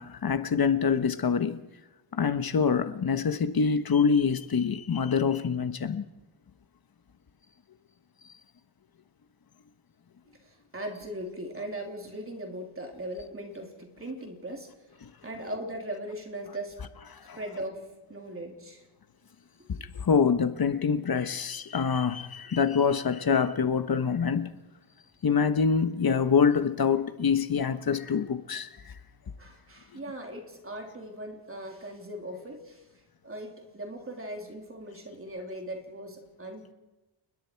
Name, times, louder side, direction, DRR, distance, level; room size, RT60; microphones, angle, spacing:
voice 1, 0.0-1.6 2.1-6.0 17.1-17.4 19.7-24.5 25.2-28.7, left 6 dB, 45° left, 1.2 m, -25 dB
voice 2, 10.4-14.7 15.2-16.8 17.3-18.8 19.8-19.9 29.4-32.8 33.2-36.7, right 1 dB, 25° right, 3.3 m, -39 dB
29.5 x 20.5 x 4.7 m
wide cardioid pair, 175°, 50 cm